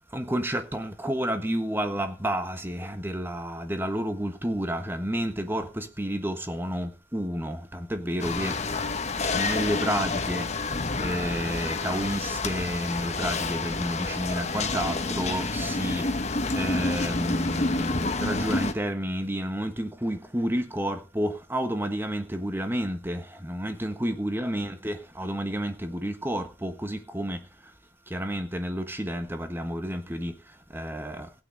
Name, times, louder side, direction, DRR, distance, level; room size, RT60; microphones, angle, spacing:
voice 1, 0.1-8.6 9.2-27.7 28.1-31.3, equal, 10° right, 1.4 m, -31 dB
sound 1, 8.2-18.7, left 3 dB, 40° left, 1.2 m, -29 dB
16.0 x 9.0 x 3.9 m
head